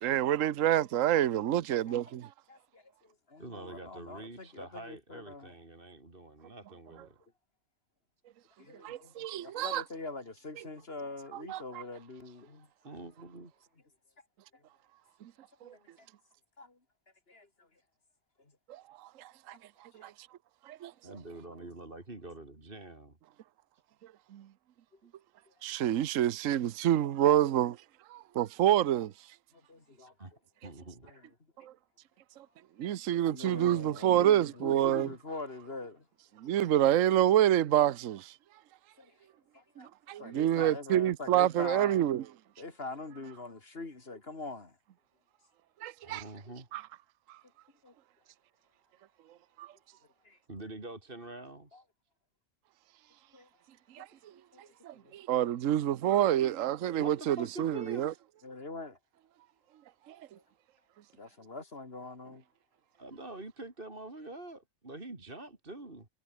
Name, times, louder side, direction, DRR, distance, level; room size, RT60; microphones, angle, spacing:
voice 1, 0.0-2.3 8.8-9.8 11.5-11.6 15.6-15.7 18.7-19.5 20.0-20.1 20.7-20.9 24.3-24.5 25.6-27.8 28.1-29.1 32.8-35.1 36.4-38.3 39.8-42.2 45.8-46.2 46.7-46.8 49.6-49.7 53.9-54.1 54.8-58.1 60.1-60.2, right 11 dB, 65° right, 1.1 m, -27 dB
voice 2, 2.5-5.5 8.6-13.1 14.5-14.6 15.6-16.1 16.6-16.8 17.3-17.7 18.4-18.5 19.9-20.1 29.5-30.1 31.0-31.3 32.9-33.0 33.3-36.1 36.4-36.6 39.0-39.2 39.5-39.9 40.2-42.1 42.6-44.8 46.4-46.5 47.8-47.9 50.2-50.4 51.7-51.8 53.3-53.5 54.0-54.1 54.5-55.1 58.4-59.0 61.1-62.4, left 3 dB, 45° left, 2.9 m, -44 dB
voice 3, 3.4-7.2 12.8-13.5 21.0-23.2 30.2-30.3 30.6-31.1 46.0-46.7 50.5-51.8 57.0-58.2 63.0-66.1, right 2 dB, 40° right, 3.5 m, -46 dB
omnidirectional pair, 1.5 m